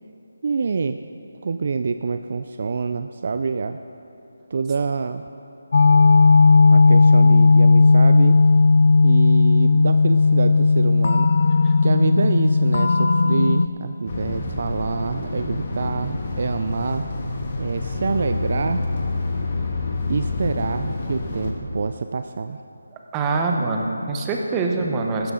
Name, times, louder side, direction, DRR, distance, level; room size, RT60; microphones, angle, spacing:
voice 1, 0.4-1.0 1.4-3.8 4.5-5.2 6.7-8.4 9.0-11.3 11.8-17.1 17.6-18.8 20.1-22.6 23.6-23.7, right 4 dB, 45° right, 9 dB, 0.3 m, -26 dB
sound 1, 5.7-13.7, left 3 dB, 55° left, 0.4 m, -15 dB
sound 2, 14.1-21.5, left 3 dB, 40° left, 1.5 m, -27 dB
voice 2, 23.1-25.3, right 3 dB, 15° right, 2 dB, 0.9 m, -24 dB
15.5 x 12.5 x 3.8 m, 2.9 s
figure-of-eight pair, 165°, 0 cm